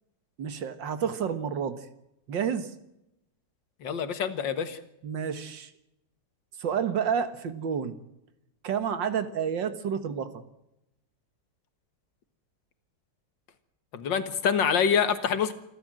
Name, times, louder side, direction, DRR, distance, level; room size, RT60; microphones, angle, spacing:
voice 1, 0.4-1.9 2.3-2.7 5.0-5.7 6.6-8.0 8.6-10.4, right 7 dB, 85° right, 11 dB, 2.2 m, -30 dB
voice 2, 3.8-4.8 13.9-15.5, left 7 dB, 85° left, 10 dB, 2.2 m, -26 dB
27.5 x 12.5 x 7.6 m, 0.85 s
omnidirectional pair, 1.9 m